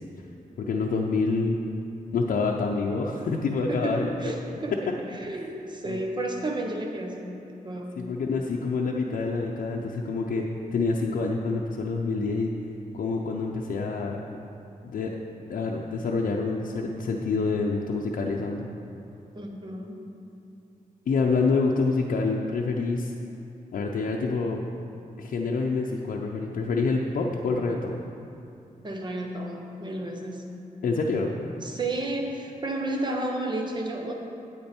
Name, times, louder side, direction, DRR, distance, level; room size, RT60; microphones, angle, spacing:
voice 1, 0.6-1.6 2.1-4.1 5.8-6.0 8.0-10.4 10.7-12.5 12.9-14.2 14.8-15.1 15.5-18.7 21.1-23.1 23.7-24.6 25.2-28.0 30.8-31.3, left 4 dB, 75° left, -1 dB, 0.6 m, -27 dB
voice 2, 3.6-8.0 19.3-19.9 28.8-30.5 31.6-34.1, right 2 dB, 30° right, 2 dB, 1.0 m, -32 dB
8.6 x 8.6 x 4.4 m, 2.7 s
wide cardioid pair, 135°, 14 cm